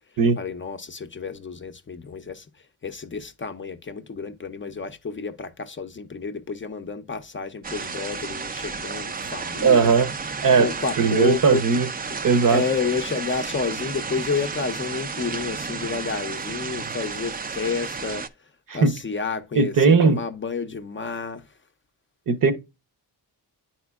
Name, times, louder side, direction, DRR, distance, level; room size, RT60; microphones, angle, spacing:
voice 1, 0.4-2.5 2.8-9.9 10.6-11.6 12.5-18.3 18.7-21.4, left 5 dB, 30° left, 0.5 m, -30 dB
sound 1, 7.6-18.3, right 5 dB, 25° right, 0.4 m, -32 dB
voice 2, 9.6-10.1 10.4-10.7 11.0-11.9 12.2-12.6 18.7-18.9 19.6-20.2 22.3-22.5, right 5 dB, 55° right, 0.8 m, -18 dB
10.0 x 4.3 x 2.3 m
wide cardioid pair, 130°, 39 cm